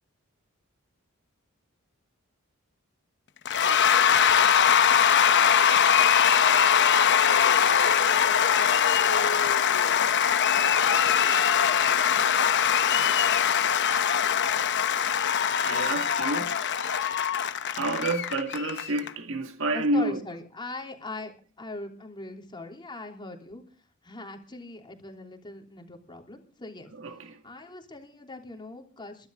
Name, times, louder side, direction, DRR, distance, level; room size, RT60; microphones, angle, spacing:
Cheering / Applause / Crowd, 3.5-19.1, left 8 dB, 55° left, 0.9 m, -22 dB
voice 1, 15.6-16.6 17.7-20.2 27.0-27.4, right 2 dB, 60° right, 1.8 m, -29 dB
voice 2, 19.7-21.3 21.6-23.6 24.0-26.9 27.4-29.3, left 2 dB, 20° left, 3.3 m, -40 dB
23.0 x 12.0 x 3.7 m
head